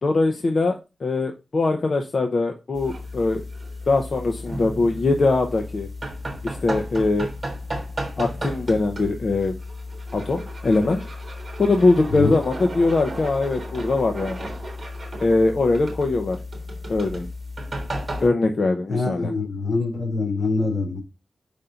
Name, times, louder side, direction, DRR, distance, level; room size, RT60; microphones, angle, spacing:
voice 1, 0.0-3.4 3.9-5.9 6.4-7.3 8.2-9.6 10.1-11.1 11.6-14.5 15.2-16.4 16.9-17.3 18.2-19.3, left 3 dB, 45° left, 3 dB, 0.7 m, -22 dB
sound 1, 2.7-18.3, equal, 35° right, 1.6 m, -33 dB
voice 2, 18.9-21.0, left 3 dB, 75° left, 2 dB, 2.4 m, -24 dB
5.3 x 3.8 x 5.7 m, 0.27 s
wide cardioid pair, 155°, 0 cm